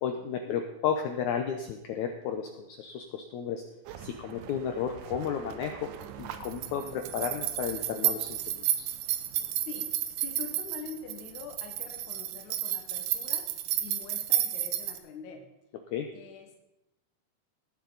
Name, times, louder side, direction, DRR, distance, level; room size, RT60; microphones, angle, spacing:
voice 1, 0.0-3.6 4.0-5.9 6.2-8.9 15.9-16.1, left 7 dB, 80° left, 5 dB, 1.7 m, -33 dB
sound 1, 3.9-15.0, right 11 dB, 80° right, 1.8 m, -33 dB
voice 2, 9.5-13.4 13.8-15.4 16.1-16.6, left 5 dB, 60° left, 2 dB, 2.5 m, -45 dB
18.5 x 7.4 x 4.0 m, 0.92 s
omnidirectional pair, 4.3 m